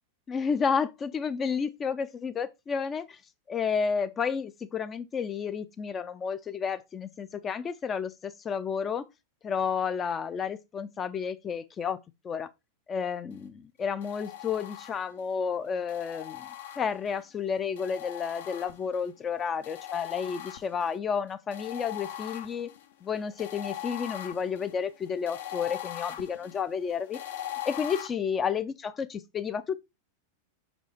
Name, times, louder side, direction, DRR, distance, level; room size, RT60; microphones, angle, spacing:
voice 1, 0.3-3.2 3.5-9.1 9.4-12.0 12.2-12.5 12.9-16.5 16.8-22.7 23.0-27.2 27.6-29.8, left 6 dB, 25° left, 0.5 m, -31 dB
sound 1, 14.0-15.3 15.9-17.2 17.8-19.1 19.6-21.0 21.5-28.1, left 11 dB, 60° left, 0.8 m, -41 dB
5.5 x 5.1 x 3.4 m
figure-of-eight pair, 90°, 0 cm